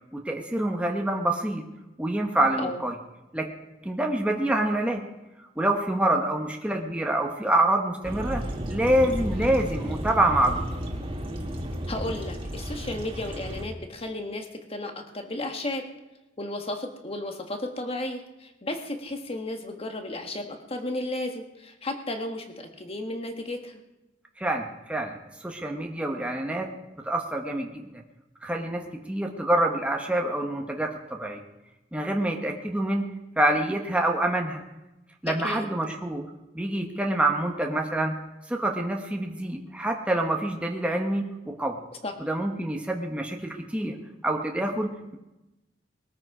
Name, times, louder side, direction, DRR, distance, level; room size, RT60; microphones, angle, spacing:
voice 1, 0.1-1.7 2.0-2.9 3.3-3.5 3.8-5.0 5.6-8.4 8.7-10.6 24.4-26.7 27.0-28.0 28.4-31.4 31.9-33.1 33.4-34.6 35.2-38.2 38.5-41.8 42.2-44.0 44.2-45.2, right 1 dB, 5° right, 2 dB, 1.1 m, -26 dB
sound 1, 8.0-13.6, equal, 30° right, 1.9 m, -33 dB
voice 2, 11.9-15.9 16.4-23.8 35.3-35.7 42.0-42.1, left 1 dB, 30° left, 5 dB, 1.5 m, -34 dB
21.0 x 13.0 x 4.9 m, 1.0 s
head